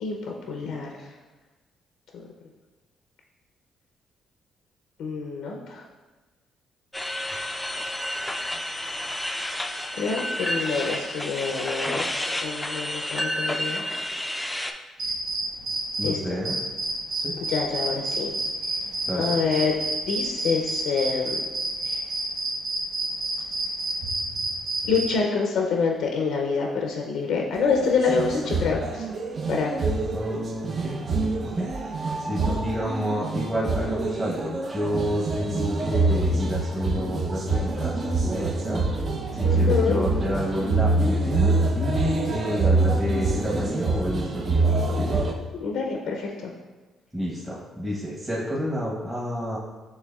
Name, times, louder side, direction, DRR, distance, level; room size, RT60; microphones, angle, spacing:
voice 1, 0.0-0.9 2.1-2.2 5.0-5.8 10.0-12.0 12.4-13.8 16.0-16.4 17.5-18.3 19.2-19.7 20.1-21.4 21.8-22.0 24.9-29.0 29.5-29.7 39.4-40.0 45.6-46.5, left 5 dB, 80° left, 1 dB, 0.5 m, -26 dB
sound 1, 6.9-14.7, left 1 dB, 10° left, 0.3 m, -30 dB
sound 2, 15.0-16.1 16.4-25.1, right 2 dB, 70° right, 1.0 m, -28 dB
voice 2, 16.0-16.6 17.2-17.3 19.1-19.4 30.1-31.0 31.4-31.7 32.0-38.8 39.3-45.2 47.1-49.6, equal, 10° right, -7 dB, 0.9 m, -29 dB
sound 3, 27.5-45.3, right 2 dB, 50° right, 0.5 m, -25 dB
6.1 x 3.2 x 2.3 m, 1.2 s
cardioid pair, 90°, 0 cm